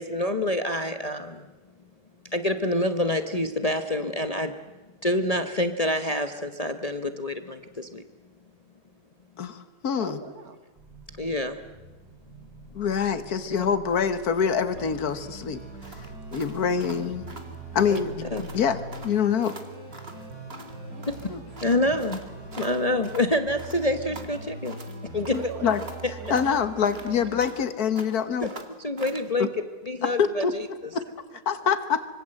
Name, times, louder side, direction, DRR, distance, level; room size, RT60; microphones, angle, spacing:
voice 1, 0.0-1.3 2.3-4.5 5.0-8.0 11.2-11.5 17.9-18.0 18.3-18.4 21.6-22.2 22.6-24.7 25.1-25.4 28.4-28.5 28.8-29.5 29.9-30.7, left 1 dB, 25° left, 8 dB, 1.1 m, -26 dB
voice 2, 9.4-10.2 12.7-15.6 16.3-17.3 17.7-18.3 18.5-19.6 21.3-21.4 25.3-25.8 26.3-28.5 29.4-29.5 30.2-31.0 31.5-32.1, left 7 dB, 75° left, 11 dB, 1.9 m, -25 dB
voice 3, 10.0-10.6 20.9-21.3 25.3-25.8 26.2-26.7 27.1-27.2 31.0-31.7, right 4 dB, 70° right, 8 dB, 2.5 m, -41 dB
sound 1, 10.8-19.1, right 3 dB, 15° right, 2.2 m, -50 dB
sound 2, 14.7-27.5, right 2 dB, 85° right, 4.7 m, -41 dB
sound 3, 15.8-18.1 18.4-18.6 18.9-20.8 21.0-23.3 23.6-25.0 25.3-27.7 28.0-29.3, right 2 dB, 40° right, 2.3 m, -44 dB
25.5 x 24.0 x 7.8 m, 1.2 s
omnidirectional pair, 1.6 m